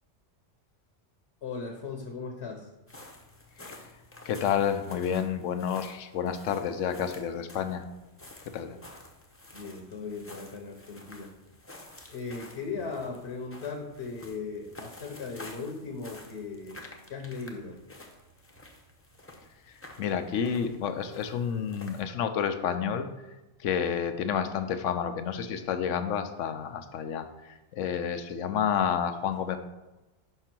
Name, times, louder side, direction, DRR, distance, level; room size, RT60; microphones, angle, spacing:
voice 1, 1.4-2.7 9.5-11.3 12.1-16.8 17.1-17.8, left 4 dB, 60° left, 2 dB, 1.1 m, -38 dB
sound 1, 2.9-22.0, left 1 dB, 15° left, 0.6 m, -50 dB
voice 2, 4.3-7.8 8.5-8.8 20.0-23.1 23.6-27.3 27.7-29.6, left 8 dB, 85° left, 9 dB, 1.0 m, -29 dB
5.6 x 4.5 x 5.9 m, 1.1 s
omnidirectional pair, 1.2 m